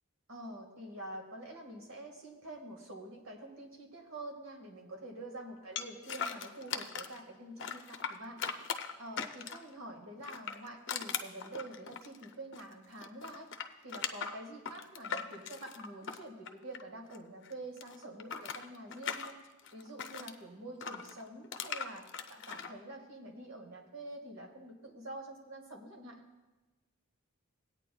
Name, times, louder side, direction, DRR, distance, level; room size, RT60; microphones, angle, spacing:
voice 1, 0.3-8.4 9.0-13.5 13.8-19.4 19.7-26.2, right 1 dB, 80° right, 2 dB, 1.7 m, -47 dB
sound 1, 5.8-7.2 7.6-9.7 10.2-12.7 13.0-17.2 17.4-20.3 20.8-22.7, left 7 dB, 55° left, 0.5 m, -40 dB
18.5 x 9.0 x 2.3 m, 1.1 s
head